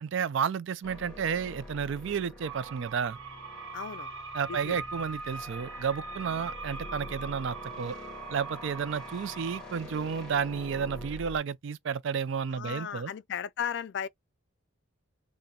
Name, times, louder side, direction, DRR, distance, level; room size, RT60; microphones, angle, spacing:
voice 1, 0.0-3.2 4.3-7.9 8.3-13.1, right 6 dB, 60° right, 0.3 m, -32 dB
sound 1, 0.8-11.4, left 1 dB, 5° left, 1.5 m, -46 dB
sound 2, 2.4-9.6, right 3 dB, 85° right, 0.9 m, -42 dB
voice 2, 3.7-4.1 4.5-4.8 12.5-14.1, left 8 dB, 55° left, 0.3 m, -35 dB
3.7 x 2.1 x 4.1 m
head